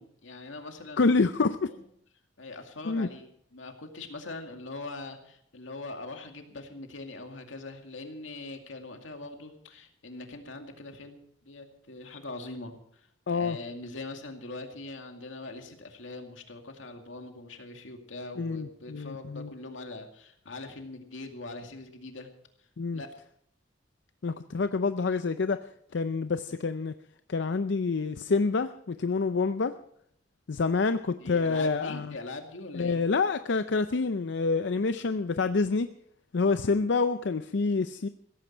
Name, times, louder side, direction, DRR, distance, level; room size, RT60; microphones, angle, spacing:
voice 1, 0.0-1.1 1.7-1.8 2.4-22.3 22.9-23.1 31.2-33.0, left 2 dB, 85° left, 4 dB, 2.3 m, -42 dB
voice 2, 1.0-1.7 2.9-3.1 13.3-13.6 18.4-19.5 22.8-23.0 24.2-25.6 25.9-26.9 27.3-29.7 30.5-32.1 32.7-35.9 36.3-38.1, left 4 dB, 65° left, 11 dB, 0.5 m, -27 dB
16.0 x 15.0 x 4.5 m, 0.70 s
head